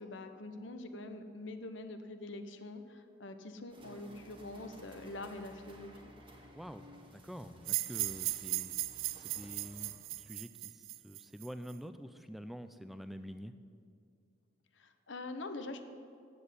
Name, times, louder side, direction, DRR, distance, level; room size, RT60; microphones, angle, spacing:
voice 1, 0.0-6.1 14.8-15.8, left 2 dB, 70° left, 8 dB, 0.9 m, -44 dB
sound 1, 3.7-9.9, equal, 25° right, 1.5 m, -56 dB
voice 2, 6.5-8.8 9.2-13.5, equal, ahead, 10 dB, 0.3 m, -47 dB
sound 2, 7.7-11.7, right 17 dB, 90° right, 0.4 m, -37 dB
9.7 x 8.3 x 8.2 m, 2.4 s
head